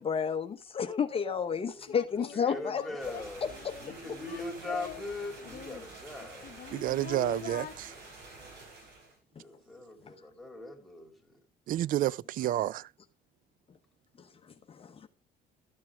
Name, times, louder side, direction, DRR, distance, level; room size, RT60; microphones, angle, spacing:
voice 1, 0.0-2.8 3.4-3.5 14.7-15.1, left 6 dB, 35° left, 1.0 m, -31 dB
Singing, 1.3-1.4 1.9-5.1 5.4-7.7, left 11 dB, 60° left, 1.0 m, -44 dB
voice 2, 1.5-6.5 9.4-11.4, left 2 dB, ahead, 3.0 m, -42 dB
sound 1, 3.0-9.2, right 3 dB, 75° right, 7.0 m, -49 dB
voice 3, 6.7-7.9 11.7-12.9, right 14 dB, 55° right, 0.4 m, -30 dB
13.0 x 7.5 x 3.5 m
cardioid pair, 110°, 17 cm